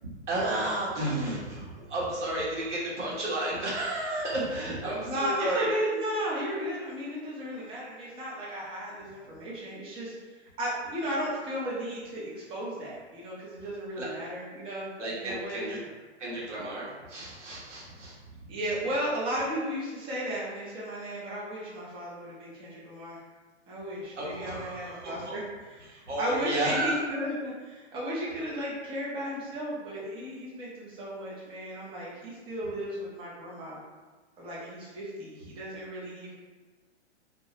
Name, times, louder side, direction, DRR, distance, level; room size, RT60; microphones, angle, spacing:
voice 1, 0.0-5.7 14.0-14.1 15.0-15.8 16.2-18.1 24.2-25.3 25.9-27.0, right 1 dB, 85° right, -6 dB, 1.2 m, -32 dB
voice 2, 5.1-10.1 10.6-15.7 18.5-23.2 23.7-33.8 34.4-36.3, equal, 15° right, -6 dB, 0.6 m, -34 dB
2.7 x 2.2 x 3.0 m, 1.4 s
hypercardioid pair, 135°, 35 cm